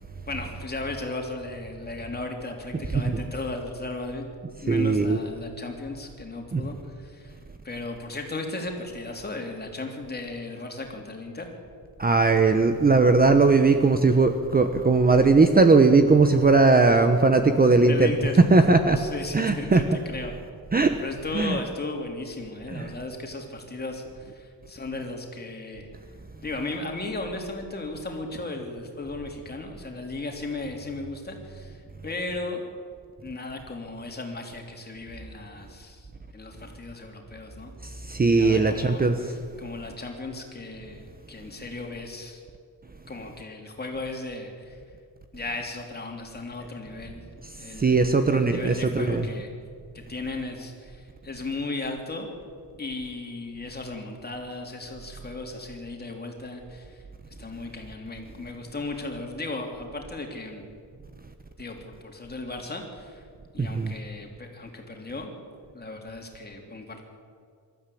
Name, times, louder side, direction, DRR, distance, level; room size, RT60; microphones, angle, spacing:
voice 1, 0.3-4.3 4.6-7.4 7.6-11.5 17.8-20.3 21.0-25.9 26.4-32.6 33.2-37.7 38.3-42.4 43.1-44.8 45.3-47.2 47.6-49.5 49.9-52.3 52.8-57.0 57.4-60.6 61.6-63.2 63.5-65.3 65.7-67.0, left 2 dB, 25° left, 2 dB, 3.4 m, -36 dB
voice 2, 4.7-5.2 6.5-6.6 12.0-18.1 18.5-19.0 19.3-19.8 20.7-21.0 21.3-21.6 22.7-22.9 38.1-39.2 47.8-49.2 63.6-63.9, right 3 dB, 25° right, 7 dB, 1.0 m, -19 dB
24.5 x 13.5 x 8.6 m, 2.1 s
wide cardioid pair, 135°, 39 cm